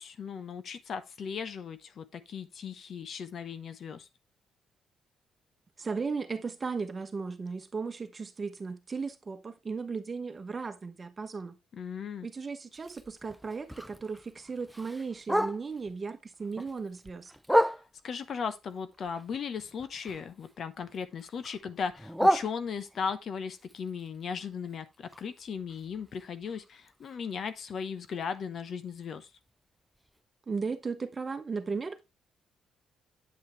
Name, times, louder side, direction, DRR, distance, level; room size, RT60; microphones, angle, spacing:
voice 1, 0.0-4.1 11.7-12.3 17.6-17.7 18.0-29.3, left 6 dB, 55° left, 0.9 m, -37 dB
voice 2, 5.8-11.6 12.2-17.3 30.5-32.0, right 4 dB, 30° right, 1.2 m, -36 dB
Bark, 12.7-15.9 16.3-18.2 18.7-20.5 20.8-23.1 23.6-27.5 27.8-27.9 28.2-28.6 29.0-29.1 29.5-29.6 30.1-30.2, equal, ahead, 0.4 m, -33 dB
8.8 x 5.7 x 3.1 m
cardioid pair, 90°, 0 cm